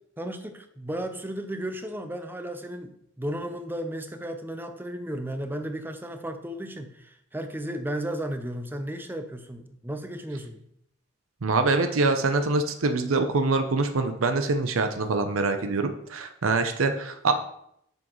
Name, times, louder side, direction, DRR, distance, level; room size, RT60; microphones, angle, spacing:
voice 1, 0.2-10.7, right 1 dB, 10° right, 7 dB, 0.6 m, -34 dB
voice 2, 11.4-17.3, right 3 dB, 90° right, 7 dB, 0.7 m, -24 dB
8.8 x 6.2 x 3.1 m, 0.74 s
head